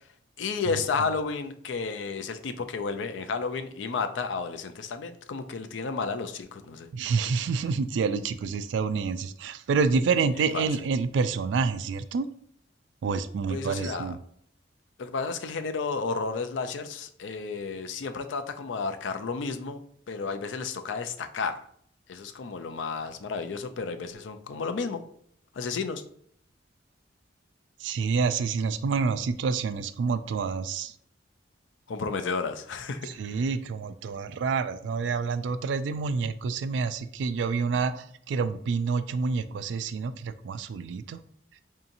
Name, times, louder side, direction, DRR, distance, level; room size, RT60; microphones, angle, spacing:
voice 1, 0.4-6.9 10.4-10.7 13.5-14.1 15.0-19.8 20.1-21.6 22.1-25.0 25.5-26.0 31.9-33.1, left 4 dB, 85° left, 9 dB, 0.4 m, -32 dB
voice 2, 6.9-12.3 13.0-14.2 27.8-30.9 33.0-41.2, right 5 dB, 75° right, 12 dB, 0.3 m, -28 dB
4.7 x 2.8 x 2.6 m, 0.65 s
head